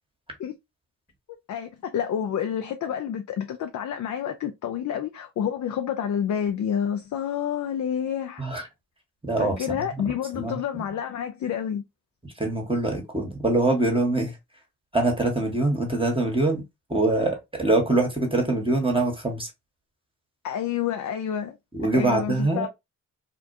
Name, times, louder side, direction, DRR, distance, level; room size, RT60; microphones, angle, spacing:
voice 1, 1.5-8.4 9.4-11.8 20.4-21.6 21.9-22.7, left 9 dB, 50° left, 0.4 m, -29 dB
voice 2, 9.2-9.8 10.3-10.9 12.4-14.3 14.9-16.6 16.9-19.5 21.7-22.7, right 2 dB, 15° right, 1.0 m, -24 dB
2.4 x 2.1 x 2.5 m
hypercardioid pair, 40°, 40 cm